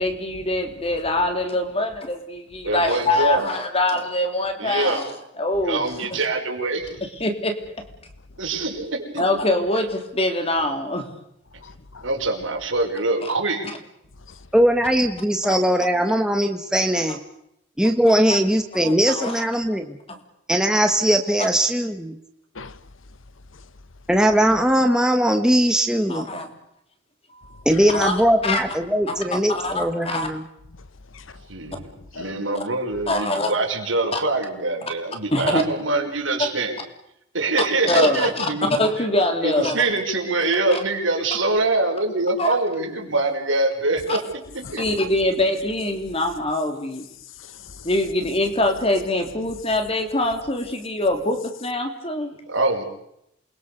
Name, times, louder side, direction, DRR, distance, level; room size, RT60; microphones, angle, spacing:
voice 1, 0.0-6.2 7.0-7.5 9.1-11.1 13.2-13.3 15.4-15.6 18.1-18.2 18.8-19.4 26.1-26.5 27.3-27.6 27.9-28.6 29.1-30.3 32.5-32.6 33.1-33.5 34.1-34.2 35.3-35.6 36.4-36.5 37.9-38.5 38.8-39.8 40.7-40.8 42.4-42.5 44.1-44.2 44.8-47.0 47.8-52.3, left 1 dB, 30° left, 3.2 m, -24 dB
voice 2, 2.6-3.5 4.6-5.1 5.6-6.9 8.4-9.2 12.0-13.7 31.5-31.8 32.1-36.8 37.3-38.7 39.3-44.8 52.5-52.8, right 2 dB, 75° right, 5.3 m, -24 dB
voice 3, 11.5-12.1 14.3-14.5 22.5-22.9 23.5-23.7 27.7-28.0 30.8-32.4 44.6-44.9 47.4-47.9, left 4 dB, 80° left, 1.1 m, -42 dB
voice 4, 14.5-17.2 17.8-20.0 20.5-22.2 24.1-26.2 27.6-30.4, equal, 5° right, 1.4 m, -20 dB
28.0 x 21.5 x 6.8 m
head